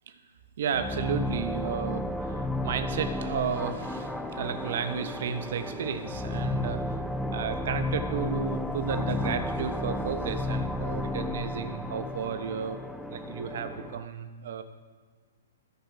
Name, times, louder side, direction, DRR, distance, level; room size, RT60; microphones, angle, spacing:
voice 1, 0.6-7.0 7.3-12.8 13.1-14.6, right 7 dB, 55° right, 8 dB, 0.8 m, -33 dB
sound 1, 0.7-14.1, left 1 dB, ahead, 0.4 m, -33 dB
13.0 x 4.4 x 5.9 m, 1.6 s
figure-of-eight pair, 115°, 0 cm